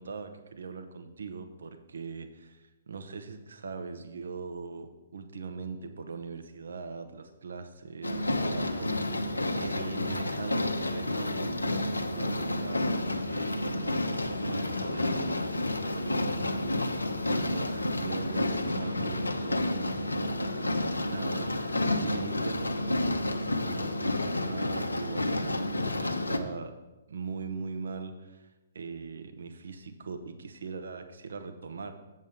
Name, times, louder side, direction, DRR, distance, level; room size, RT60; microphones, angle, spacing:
voice 1, 0.0-9.2 9.5-26.7 27.1-28.5 28.7-31.9, right 4 dB, 65° right, 8 dB, 0.8 m, -41 dB
sound 1, 8.0-26.4, left 1 dB, 85° left, 0.8 m, -30 dB
7.5 x 7.4 x 5.0 m, 1.1 s
figure-of-eight pair, 125°, 0 cm